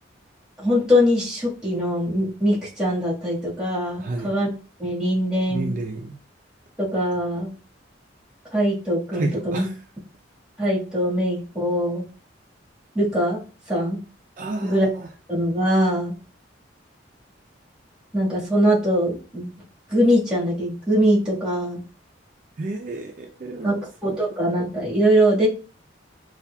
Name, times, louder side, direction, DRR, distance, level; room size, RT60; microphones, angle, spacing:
voice 1, 0.6-4.5 4.8-5.7 6.8-7.5 8.5-9.7 10.6-12.0 12.9-13.4 13.7-14.0 14.6-14.9 15.3-16.1 18.1-19.5 19.9-21.8 23.6-23.7 24.0-25.5, equal, 5° right, -7 dB, 1.5 m, -22 dB
voice 2, 4.0-4.3 5.5-6.2 9.1-9.7 14.4-15.1 22.6-23.8, right 2 dB, 45° right, 2 dB, 0.4 m, -31 dB
5.6 x 2.4 x 2.2 m, 0.37 s
head